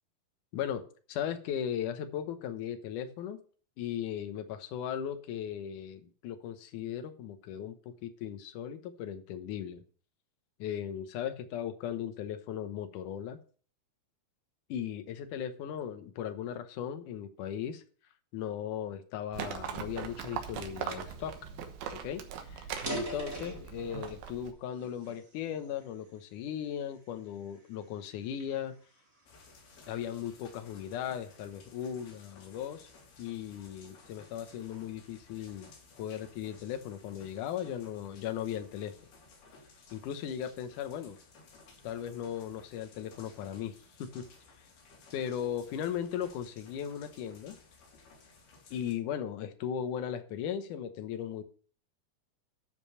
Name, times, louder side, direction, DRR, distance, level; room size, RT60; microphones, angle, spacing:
voice 1, 0.5-3.4 3.8-9.8 10.6-13.4 14.7-17.8 18.3-21.3 21.9-22.7 23.0-28.7 29.9-32.9 33.2-35.7 36.0-38.9 39.9-41.2 41.8-44.2 45.1-47.6 48.7-51.4, left 9 dB, 70° left, 8 dB, 2.2 m, -37 dB
Livestock farm animals working animals, 19.3-24.5, right 8 dB, 80° right, 3.1 m, -40 dB
sound 1, 22.0-22.1 22.6-24.2 24.8-26.1 26.6-26.9 27.5-29.6, right 1 dB, 20° right, 2.1 m, -40 dB
sound 2, 29.3-48.9, left 4 dB, 85° left, 4.7 m, -57 dB
12.0 x 5.2 x 5.5 m, 0.43 s
omnidirectional pair, 4.4 m